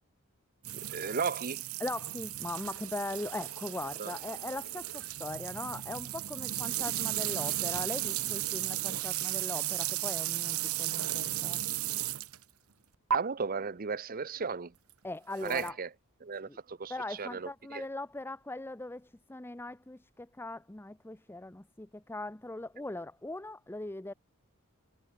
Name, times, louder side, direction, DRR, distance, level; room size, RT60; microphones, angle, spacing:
sound 1, 0.6-12.4 13.1-13.2 15.4-15.7, right 13 dB, 85° right, 1.1 m, -35 dB
voice 1, 0.9-1.6 4.0-4.1 13.1-14.7 15.4-15.9 16.2-16.9 17.2-17.8, right 5 dB, 40° right, 0.7 m, -35 dB
voice 2, 1.8-11.6 15.0-15.8 16.4-16.6 16.9-24.1, left 2 dB, 10° left, 0.6 m, -40 dB
head